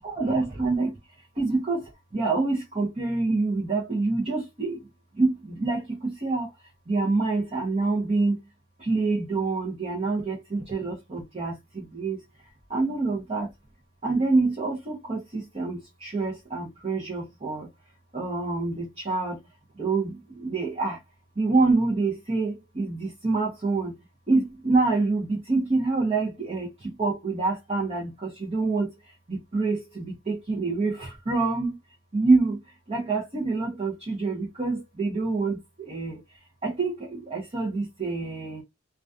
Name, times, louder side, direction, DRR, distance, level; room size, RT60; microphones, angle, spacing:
voice 1, 0.0-0.9 1.4-1.8 2.1-4.8 5.2-6.5 6.9-8.4 8.8-12.2 12.7-13.5 14.0-17.7 18.1-19.4 19.8-21.0 21.4-23.9 24.3-26.7 27.0-28.9 29.3-31.7 32.1-32.6 32.9-36.2 36.6-38.6, right 3 dB, 30° right, 0.6 m, -26 dB
2.3 x 2.2 x 2.5 m
head